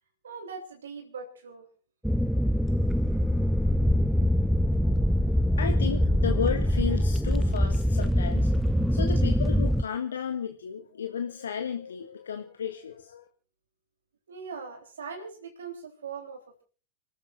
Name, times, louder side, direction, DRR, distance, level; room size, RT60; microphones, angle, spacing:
voice 1, 0.2-1.7 14.3-16.6, right 5 dB, 65° right, 4 dB, 3.7 m, -41 dB
sound 1, 2.0-9.8, equal, ahead, 0.8 m, -24 dB
voice 2, 5.2-8.5 8.9-13.3, left 7 dB, 70° left, 6 dB, 1.5 m, -33 dB
30.0 x 13.5 x 2.6 m, 0.38 s
figure-of-eight pair, 90°, 0 cm